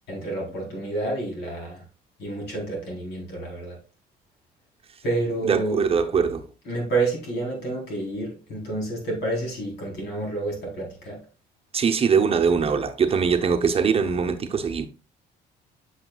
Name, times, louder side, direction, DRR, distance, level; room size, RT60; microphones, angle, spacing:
voice 1, 0.1-1.8 2.2-3.8 5.0-5.8 6.7-11.2, right 2 dB, 75° left, 3.9 m, -29 dB
voice 2, 5.4-6.4 11.7-14.9, right 6 dB, 35° right, 0.8 m, -22 dB
7.9 x 6.4 x 2.3 m
cardioid pair, 110°, 17 cm